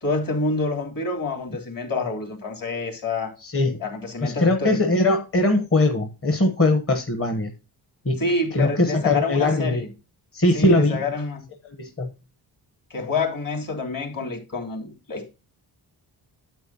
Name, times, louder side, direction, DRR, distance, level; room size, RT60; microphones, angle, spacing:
voice 1, 0.0-3.3 3.8-4.9 8.2-9.9 10.5-11.4 12.9-15.3, left 3 dB, 50° left, 3.4 m, -27 dB
voice 2, 3.4-3.8 4.2-7.5 8.0-8.2 8.5-9.8 10.3-11.0 11.6-12.1, left 2 dB, 30° left, 1.1 m, -21 dB
9.2 x 8.1 x 2.9 m
cardioid pair, 80°, 43 cm